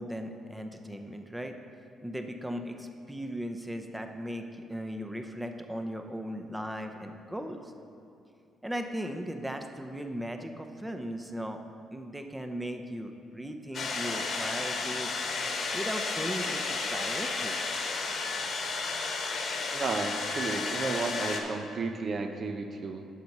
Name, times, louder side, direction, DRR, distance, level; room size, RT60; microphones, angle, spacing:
voice 1, 0.0-1.6 2.0-7.7 8.6-11.6 11.9-15.2 15.7-17.6, equal, 5° right, 5 dB, 0.6 m, -37 dB
sound 1, 13.7-21.4, left 4 dB, 60° left, 1.1 m, -32 dB
voice 2, 19.7-23.1, right 3 dB, 45° right, 6 dB, 0.5 m, -33 dB
7.5 x 6.5 x 5.3 m, 2.5 s
cardioid pair, 90°, 0 cm